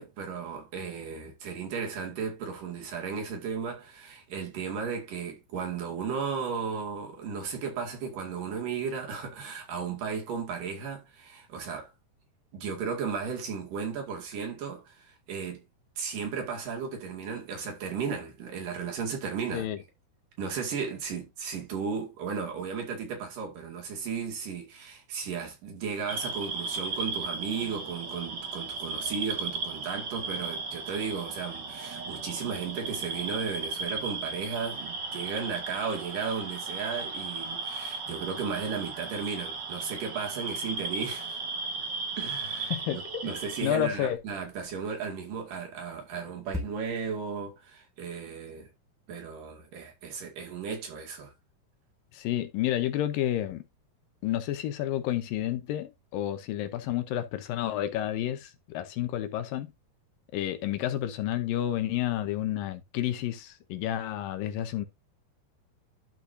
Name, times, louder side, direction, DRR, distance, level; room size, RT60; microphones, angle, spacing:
voice 1, 0.0-11.9 12.5-15.6 16.0-19.7 20.4-41.4 42.2-48.7 49.1-51.3, right 6 dB, 60° right, 3.7 m, -35 dB
sound 1, 26.1-43.7, right 4 dB, 45° right, 1.4 m, -36 dB
sound 2, 42.4-47.4, left 2 dB, ahead, 0.8 m, -45 dB
voice 2, 42.7-43.3 43.6-44.2 52.1-53.6 54.2-59.7 60.3-64.9, left 12 dB, 75° left, 2.5 m, -30 dB
12.0 x 5.6 x 2.7 m
omnidirectional pair, 4.4 m